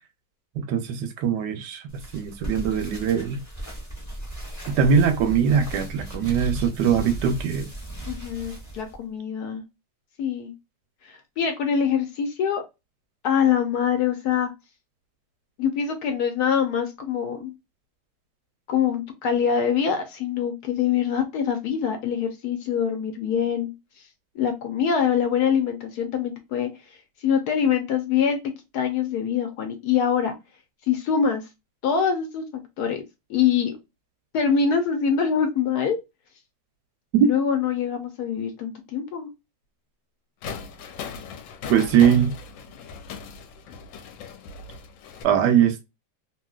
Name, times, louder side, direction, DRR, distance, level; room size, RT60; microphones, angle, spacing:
voice 1, 0.6-3.4 4.8-7.7 37.1-37.3 41.7-42.3 45.2-45.8, right 8 dB, 75° right, 1.1 m, -21 dB
sound 1, 1.9-9.0, right 1 dB, 20° left, 0.5 m, -36 dB
voice 2, 8.1-9.6 10.2-10.5 11.0-12.6 13.2-14.5 15.6-17.5 18.7-23.7 24.4-26.7 27.2-28.4 28.7-30.3 30.9-31.4 31.8-32.5 32.8-33.0 33.3-33.8 34.3-36.0 37.2-39.3, left 7 dB, 70° left, 1.0 m, -24 dB
sound 2, 40.4-45.2, left 5 dB, 90° left, 1.3 m, -38 dB
2.9 x 2.7 x 2.3 m
omnidirectional pair, 2.0 m